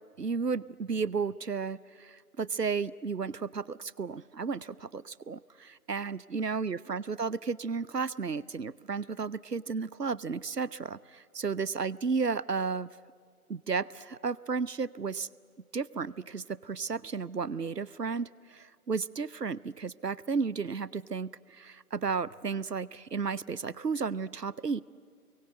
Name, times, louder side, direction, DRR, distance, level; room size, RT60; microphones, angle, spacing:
voice 1, 0.2-12.9 13.5-15.3 15.7-24.8, right 5 dB, 85° right, 21 dB, 0.8 m, -33 dB
28.5 x 23.0 x 9.1 m, 2.1 s
figure-of-eight pair, 145°, 47 cm